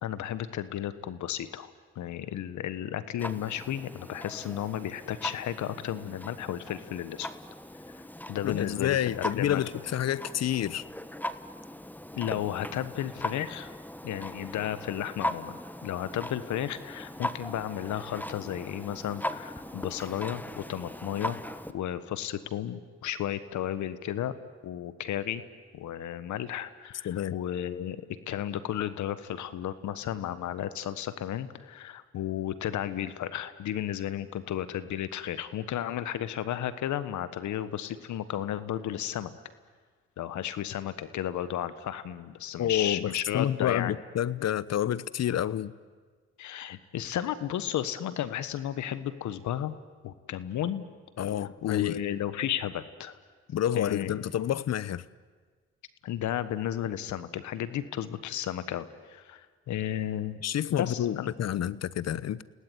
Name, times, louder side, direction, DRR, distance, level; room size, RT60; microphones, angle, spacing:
voice 1, 0.0-7.3 7.9-8.0 8.3-9.6 12.1-13.7 14.0-21.4 21.7-24.3 24.6-25.4 25.7-28.0 28.3-39.3 40.2-44.0 46.4-49.7 50.0-50.8 51.6-53.1 53.7-54.2 56.0-60.4 60.7-61.3, left 11 dB, 75° left, 1.4 m, -33 dB
Clock, 3.2-21.7, left 1 dB, 5° left, 1.4 m, -39 dB
voice 2, 8.4-10.8 27.0-27.3 42.6-45.7 51.2-52.0 53.5-55.0 60.4-62.4, left 11 dB, 60° left, 0.9 m, -29 dB
29.5 x 18.0 x 9.5 m
supercardioid pair, 55°, 29 cm